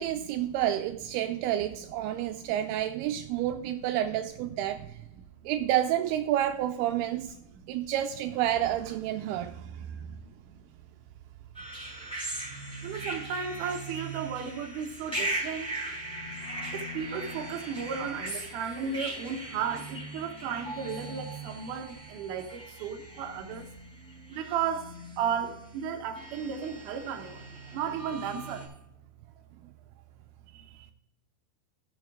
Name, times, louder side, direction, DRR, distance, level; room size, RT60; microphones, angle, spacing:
voice 1, 0.0-5.0 5.5-7.3 7.7-10.0, right 12 dB, 85° right, 2.4 m, -29 dB
voice 2, 2.0-2.8 3.3-3.7 5.1-5.2 9.3-10.2 10.5-10.7 12.8-15.8 16.7-23.7 24.3-24.9 25.2-27.5 27.7-28.7 30.5-30.9, right 7 dB, 65° right, 2.2 m, -35 dB
sound 1, 11.5-28.7, right 1 dB, ahead, 4.0 m, -39 dB
15.5 x 6.5 x 3.5 m
omnidirectional pair, 4.7 m